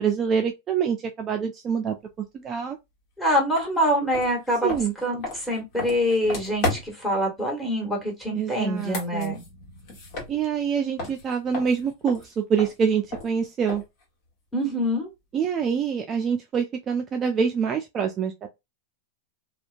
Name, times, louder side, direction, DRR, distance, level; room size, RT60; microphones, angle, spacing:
voice 1, 0.0-1.9 2.4-2.8 4.6-4.9 8.4-9.4 10.3-13.8 15.3-18.5, right 7 dB, 30° right, 0.4 m, -25 dB
voice 2, 3.2-4.7 5.0-9.4 14.5-15.1, equal, 10° left, 1.4 m, -25 dB
sound 1, 3.5-3.7 4.1-7.1 8.6-10.7 11.0-14.0, left 2 dB, 50° left, 1.3 m, -34 dB
2.7 x 2.2 x 2.5 m
hypercardioid pair, 120°, 0 cm